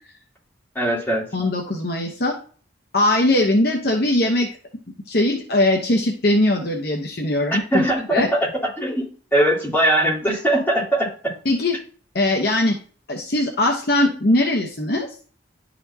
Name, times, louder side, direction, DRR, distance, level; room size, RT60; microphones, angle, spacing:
voice 1, 0.7-1.2 7.5-8.5 8.8-11.1, right 1 dB, 10° left, -6 dB, 3.1 m, -20 dB
voice 2, 1.3-2.4 2.9-4.5 5.1-8.3 11.4-11.8 12.1-12.8 13.1-15.1, left 1 dB, 55° left, 1 dB, 0.9 m, -20 dB
11.0 x 4.2 x 2.8 m, 0.42 s
head